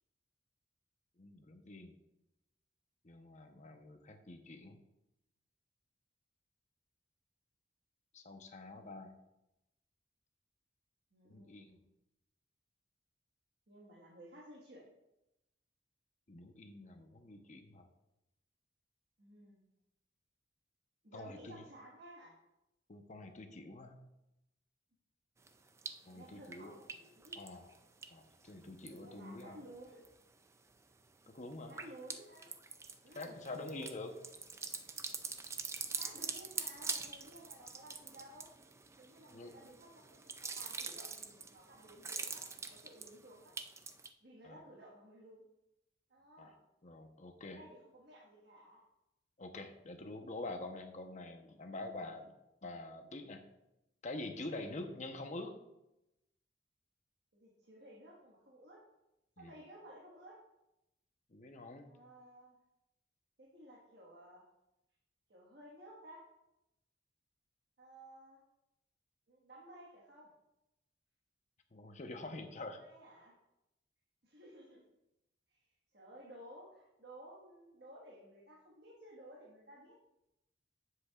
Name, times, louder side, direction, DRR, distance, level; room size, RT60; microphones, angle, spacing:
voice 1, 1.2-1.9 3.0-4.8 8.1-9.1 11.2-11.8 16.3-17.9 21.1-21.6 22.9-24.0 26.1-26.7 27.4-27.7 28.1-29.6 31.3-31.8 33.1-34.1 39.3-39.5 44.4-44.6 46.4-46.5 46.8-47.6 49.4-52.3 52.6-53.4 54.0-55.5 59.4-59.5 61.3-61.9 71.7-72.8, left 2 dB, 45° left, 5 dB, 0.9 m, -46 dB
voice 2, 11.1-11.8 13.7-14.8 19.2-19.6 21.0-22.4 26.1-27.4 28.9-30.0 31.7-32.5 33.0-33.9 36.0-38.5 39.0-43.5 44.2-45.4 46.1-46.6 47.4-48.8 52.1-52.2 57.3-58.8 59.4-60.4 61.9-62.6 63.4-64.4 65.3-66.2 67.8-68.4 69.3-70.3 72.8-73.3 74.2-74.8 75.5-75.6 75.9-80.0, right 1 dB, 65° right, -4 dB, 1.6 m, -55 dB
sound 1, 25.5-26.1 26.4-29.4 29.8-30.3 30.7-44.1, right 5 dB, 15° right, 0.4 m, -45 dB
9.4 x 7.8 x 2.4 m, 0.89 s
head